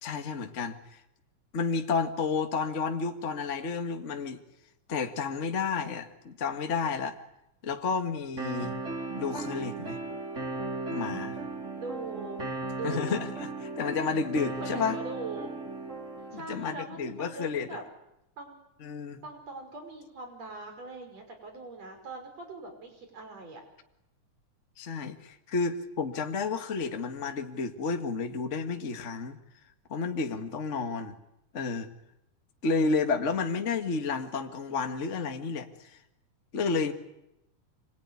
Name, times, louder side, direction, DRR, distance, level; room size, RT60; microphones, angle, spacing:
voice 1, 0.0-1.0 1.5-4.4 4.9-7.2 7.6-8.8 9.1-10.0 10.9-11.4 12.8-15.0 16.3-17.8 18.8-19.2 24.8-29.4 29.9-31.2 31.5-31.9 32.6-36.0 36.5-36.9, left 4 dB, 30° left, 6 dB, 1.5 m, -31 dB
sound 1, 8.4-16.4, right 3 dB, 25° right, 3.3 m, -36 dB
voice 2, 11.8-12.4 12.7-13.1 14.6-15.5 16.3-17.8 18.4-18.6 19.2-23.6, right 3 dB, 55° right, 5 dB, 6.8 m, -41 dB
26.5 x 22.0 x 9.8 m, 0.84 s
omnidirectional pair, 3.5 m